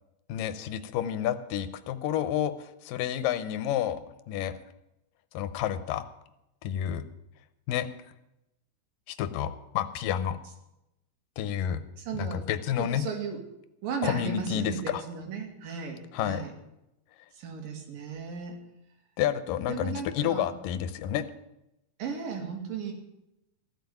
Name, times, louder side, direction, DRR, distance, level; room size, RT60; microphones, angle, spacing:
voice 1, 0.3-4.0 4.3-4.5 5.3-6.1 6.6-7.1 7.7-7.9 9.1-10.4 11.4-11.8 12.1-13.1 14.0-15.0 16.1-16.4 19.2-21.3, left 10 dB, 85° left, 12 dB, 2.5 m, -30 dB
voice 2, 12.0-12.5 12.8-13.4 13.8-16.5 17.3-18.6 19.7-20.5 22.0-22.9, right 6 dB, 85° right, 3 dB, 4.0 m, -35 dB
15.0 x 7.3 x 9.2 m, 0.88 s
omnidirectional pair, 3.8 m